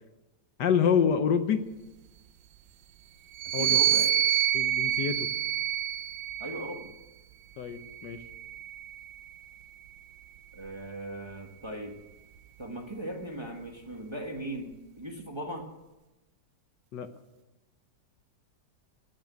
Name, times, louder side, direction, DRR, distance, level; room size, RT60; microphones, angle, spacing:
voice 1, 0.6-1.6 3.5-3.8 4.5-5.3 7.6-8.2 16.9-17.1, left 7 dB, 70° left, 9 dB, 1.5 m, -26 dB
sound 1, 3.3-6.9 7.8-9.4, right 11 dB, 80° right, 1.4 m, -28 dB
voice 2, 3.6-4.2 6.4-6.9 10.5-12.0 12.6-15.7, right 1 dB, 15° right, 1 dB, 1.3 m, -38 dB
18.5 x 6.2 x 9.1 m, 1.0 s
omnidirectional pair, 2.0 m